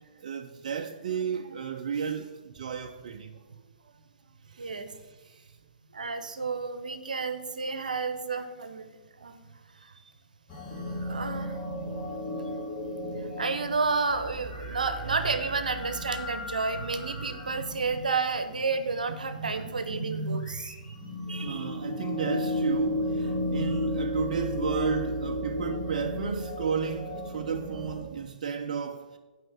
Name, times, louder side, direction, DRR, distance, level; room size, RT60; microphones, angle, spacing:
voice 1, 0.0-3.4 3.8-4.0 4.5-5.5 21.4-29.2, right 6 dB, 60° right, 0.5 m, -33 dB
voice 2, 4.6-4.9 5.9-9.4 11.0-11.6 13.4-20.8 21.3-21.7, right 4 dB, 80° right, 0.8 m, -31 dB
sound 1, 10.5-19.2 20.2-28.0, left 1 dB, 25° left, 2.1 m, -34 dB
7.8 x 5.0 x 6.8 m
figure-of-eight pair, 120°, 4 cm